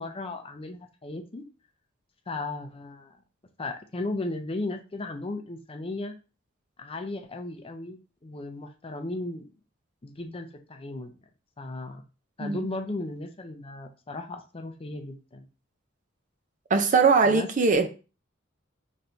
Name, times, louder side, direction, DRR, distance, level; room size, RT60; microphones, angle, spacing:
voice 1, 0.0-1.4 2.3-3.2 3.6-6.2 6.8-9.5 10.0-11.1 11.6-12.0 12.4-15.5 17.2-17.5 17.8-17.9, left 2 dB, 30° left, 0.6 m, -36 dB
voice 2, 16.7-17.9, right 4 dB, 40° right, 0.5 m, -21 dB
5.6 x 3.1 x 2.7 m
head